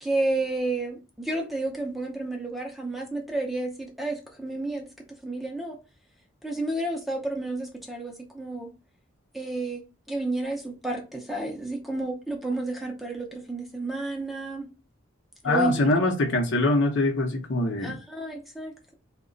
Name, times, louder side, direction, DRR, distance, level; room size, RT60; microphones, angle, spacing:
voice 1, 0.0-4.9 5.2-5.8 6.4-8.7 9.3-14.7 15.4-15.9 17.8-18.9, right 2 dB, ahead, 0.5 m, -31 dB
voice 2, 15.4-17.9, left 2 dB, 60° left, 0.7 m, -23 dB
3.0 x 2.2 x 3.7 m
head